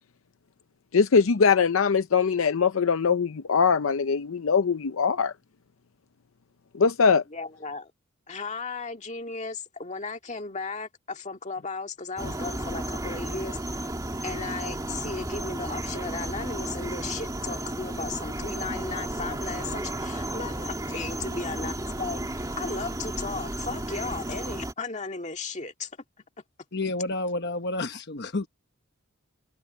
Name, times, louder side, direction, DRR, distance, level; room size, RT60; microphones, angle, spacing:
voice 1, 0.9-5.3 6.8-7.2, left 5 dB, 75° left, 0.6 m, -22 dB
voice 2, 7.3-7.9 8.3-13.6 14.2-25.9, left 4 dB, 35° left, 2.0 m, -35 dB
sound 1, 12.2-24.7, right 1 dB, 15° right, 2.9 m, -33 dB
voice 3, 26.7-28.5, left 2 dB, 55° left, 1.2 m, -30 dB
head